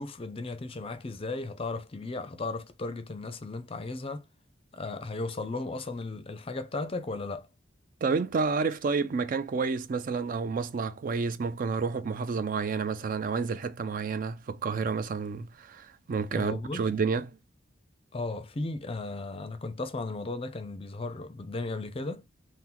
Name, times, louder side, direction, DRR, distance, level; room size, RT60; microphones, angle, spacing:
voice 1, 0.0-4.2 4.7-7.5 16.3-16.9 18.1-22.3, left 3 dB, 30° left, 0.5 m, -35 dB
voice 2, 8.0-17.3, right 5 dB, 45° right, 0.4 m, -30 dB
3.9 x 2.1 x 4.3 m
head